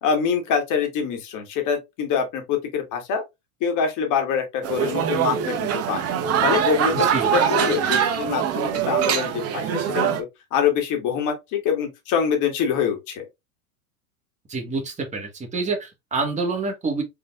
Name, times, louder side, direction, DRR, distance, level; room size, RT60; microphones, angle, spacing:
voice 1, 0.0-3.2 3.6-6.0 6.4-7.0 7.3-10.1 10.5-13.3, left 7 dB, 45° left, 2.2 m, -25 dB
sound 1, 4.6-10.2, right 8 dB, 35° right, 1.1 m, -23 dB
voice 2, 14.5-17.0, right 3 dB, 15° right, 1.8 m, -27 dB
5.2 x 3.8 x 2.6 m
hypercardioid pair, 95°, 43 cm